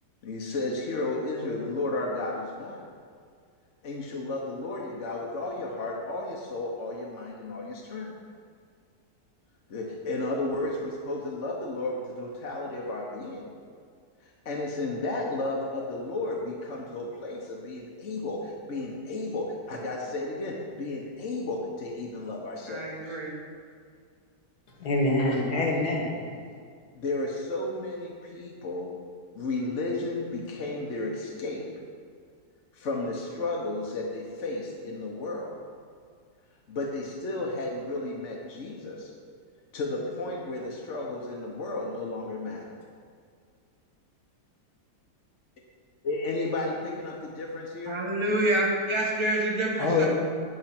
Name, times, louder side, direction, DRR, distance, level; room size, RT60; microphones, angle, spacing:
voice 1, 0.2-2.9 3.8-8.1 9.7-13.5 14.2-23.2 26.9-28.9 29.3-31.7 32.7-35.5 36.7-39.1 39.7-42.7 46.0-48.0, left 2 dB, 50° left, -2 dB, 1.2 m, -33 dB
voice 2, 22.7-23.3 47.9-50.1, right 1 dB, 20° right, -2 dB, 1.3 m, -27 dB
voice 3, 24.8-26.3 49.8-50.1, left 2 dB, 70° left, -1 dB, 2.0 m, -25 dB
10.5 x 4.8 x 5.9 m, 2.2 s
omnidirectional pair, 1.8 m